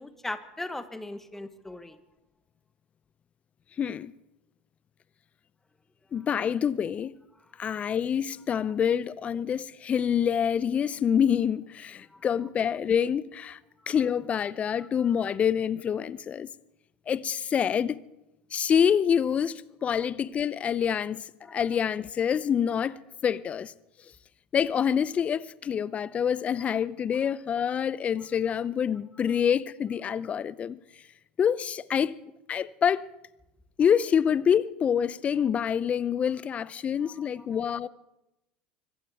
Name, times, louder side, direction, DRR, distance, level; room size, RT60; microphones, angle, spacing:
voice 1, 0.0-2.0 7.6-7.7 12.1-12.3 14.8-14.9 21.5-21.6 37.0-37.4, left 2 dB, 10° left, 1.4 m, -39 dB
voice 2, 3.8-4.1 6.1-7.1 7.6-13.6 13.9-16.5 17.1-18.0 18.5-23.7 24.5-30.8 31.4-32.1 32.5-33.1 33.8-37.9, left 8 dB, 35° left, 0.6 m, -26 dB
24.5 x 15.5 x 3.6 m
hypercardioid pair, 75°, 4 cm